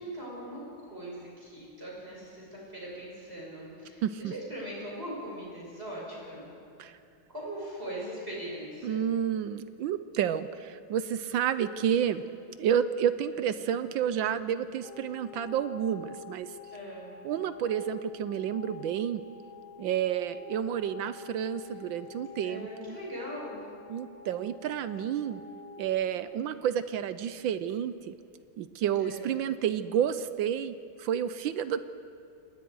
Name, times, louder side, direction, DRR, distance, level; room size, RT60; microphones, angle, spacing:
voice 1, 0.0-6.5 7.3-9.1 13.3-13.5 16.7-17.1 22.4-23.6 29.0-29.3, right 1 dB, 25° right, -5 dB, 5.7 m, -40 dB
voice 2, 4.0-4.3 6.8-7.0 8.8-12.2 12.6-16.5 17.2-19.2 19.8-23.0 23.9-25.4 25.8-28.1 28.6-31.8, right 9 dB, 75° right, 13 dB, 1.3 m, -30 dB
sound 1, 14.8-25.9, left 6 dB, 85° left, 3.3 m, -48 dB
28.0 x 20.0 x 4.7 m, 2.6 s
omnidirectional pair, 2.3 m